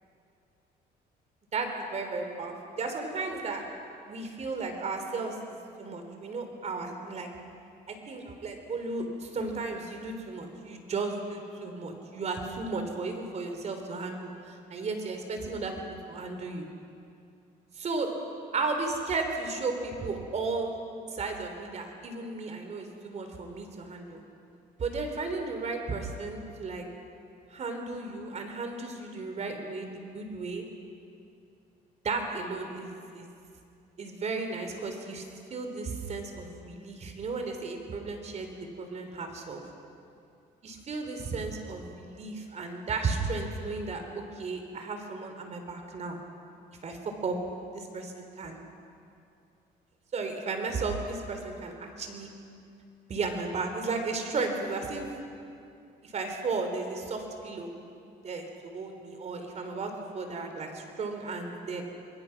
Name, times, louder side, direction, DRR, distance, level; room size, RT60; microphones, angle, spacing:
voice 1, 1.5-3.6 4.1-7.3 7.9-15.7 16.1-16.7 17.7-18.1 18.5-20.8 21.1-24.2 24.8-26.8 27.5-30.6 32.0-33.3 34.0-35.3 35.5-39.6 40.6-46.2 46.8-47.4 47.7-48.6 50.1-52.3 53.1-55.1 56.0-57.7 58.2-61.8, right 3 dB, 40° right, 5 dB, 3.7 m, -34 dB
27.0 x 21.0 x 6.0 m, 2.5 s
cardioid pair, 110°, 17 cm